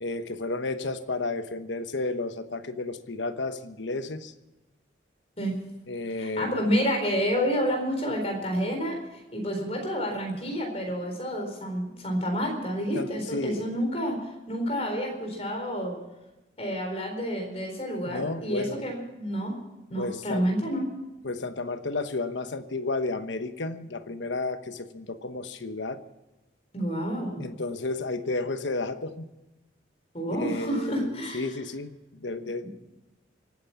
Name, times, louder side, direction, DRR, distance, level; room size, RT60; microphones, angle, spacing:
voice 1, 0.0-4.3 5.9-6.6 12.9-13.6 18.0-18.8 19.9-20.4 21.2-26.0 27.4-29.3 30.3-32.7, left 3 dB, 85° left, 10 dB, 1.1 m, -32 dB
voice 2, 6.2-8.9 9.3-14.2 14.5-15.9 16.6-19.5 19.9-20.9 26.7-27.4 30.1-31.5, equal, 35° left, 2 dB, 4.2 m, -29 dB
24.5 x 9.3 x 5.9 m, 1.0 s
head